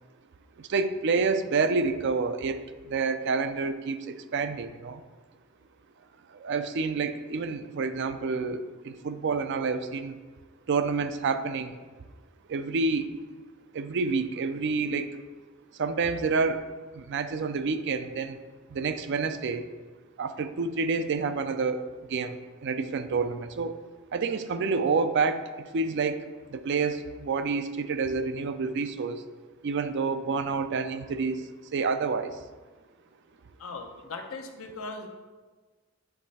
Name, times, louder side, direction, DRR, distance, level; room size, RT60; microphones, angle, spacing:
voice 1, 0.6-5.0 6.3-10.2 10.7-11.8 12.5-13.1 13.7-15.1 15.8-16.6 16.9-18.4 18.7-19.7 20.2-23.7 24.1-25.5 25.7-29.2 29.6-32.4, right 4 dB, 60° right, 10 dB, 0.4 m, -28 dB
voice 2, 33.6-35.1, left 3 dB, 90° left, 4 dB, 0.7 m, -39 dB
8.0 x 3.2 x 4.1 m, 1.4 s
head